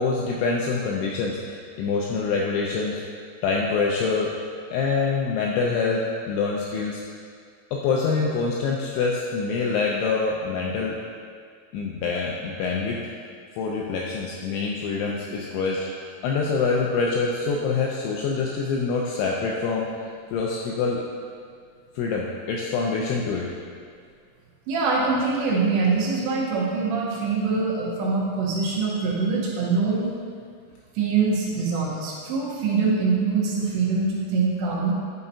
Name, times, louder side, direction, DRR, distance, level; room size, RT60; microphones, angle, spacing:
voice 1, 0.0-3.0 3.4-4.3 4.7-7.0 7.7-11.0 11.7-13.0 13.5-19.9 20.3-21.0 22.0-23.5, left 4 dB, 85° left, -2 dB, 2.7 m, -25 dB
voice 2, 24.7-30.2 31.0-34.9, right 4 dB, 75° right, -4 dB, 2.8 m, -24 dB
10.5 x 5.5 x 2.7 m, 2.1 s
omnidirectional pair, 5.9 m